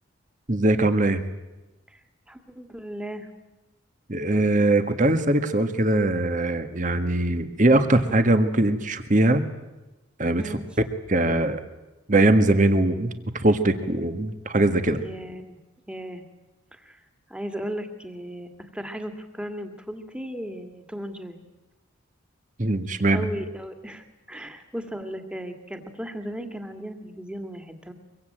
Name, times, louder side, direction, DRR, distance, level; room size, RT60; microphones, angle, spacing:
voice 1, 0.5-1.2 4.1-9.4 10.2-10.4 11.1-11.6 12.1-13.1 13.4-15.0 22.6-23.2, right 2 dB, 40° right, 9 dB, 1.6 m, -21 dB
voice 2, 2.3-3.3 10.4-10.7 15.0-15.6 15.9-16.2 16.7-17.0 17.3-21.4 23.1-27.9, equal, 5° right, 6 dB, 2.2 m, -36 dB
24.0 x 23.0 x 9.0 m, 1.0 s
head